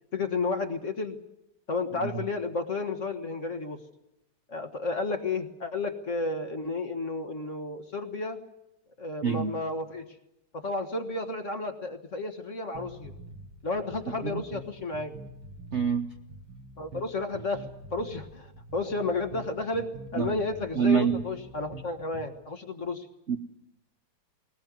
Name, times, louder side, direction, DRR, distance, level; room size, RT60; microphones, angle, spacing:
voice 1, 0.1-1.2 1.7-3.8 4.5-8.4 9.0-10.2 10.5-13.1 13.6-15.1 16.8-23.1, left 3 dB, 40° left, 6 dB, 1.7 m, -32 dB
sound 1, 12.7-22.3, right 2 dB, 85° right, 3.0 m, -46 dB
voice 2, 15.7-16.1 20.2-20.3 20.8-21.2 23.3-23.4, right 7 dB, 45° right, 5 dB, 0.9 m, -25 dB
20.0 x 19.5 x 9.4 m, 0.85 s
omnidirectional pair, 2.2 m